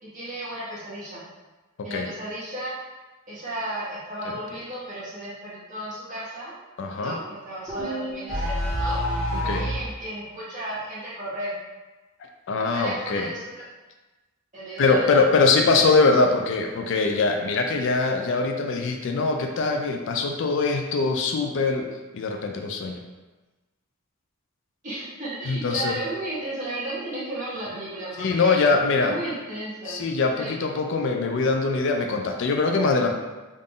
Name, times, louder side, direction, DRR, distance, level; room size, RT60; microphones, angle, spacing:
voice 1, 0.0-1.2 1.8-2.7 3.3-6.5 7.0-11.5 12.7-13.4 14.5-15.2 24.8-28.6 29.0-30.0 30.3-30.5, right 1 dB, 35° right, -10 dB, 1.5 m, -34 dB
voice 2, 6.8-7.2 9.4-9.6 12.5-13.3 14.8-21.9 22.1-23.0 25.4-26.0 28.2-29.2 29.9-33.1, left 3 dB, 60° left, 4 dB, 0.4 m, -22 dB
sound 1, 7.7-9.8, equal, ahead, 1.2 m, -27 dB
3.7 x 2.5 x 3.6 m, 1.2 s
head